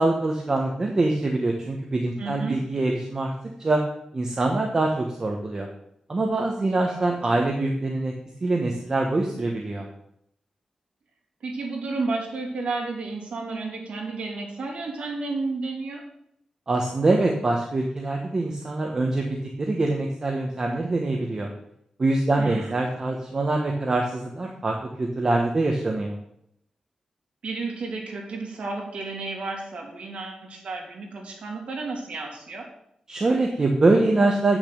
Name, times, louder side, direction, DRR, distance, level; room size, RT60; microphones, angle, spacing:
voice 1, 0.0-3.3 3.6-3.8 4.1-5.7 6.1-8.1 8.4-9.9 16.7-21.5 22.0-26.2 33.1-34.6, right 2 dB, 30° right, 1 dB, 1.0 m, -24 dB
voice 2, 2.2-2.7 6.7-7.0 11.4-16.0 22.4-22.8 27.4-32.7, right 3 dB, 75° right, 0 dB, 2.7 m, -32 dB
8.4 x 6.1 x 6.8 m, 0.74 s
wide cardioid pair, 180°, 2 cm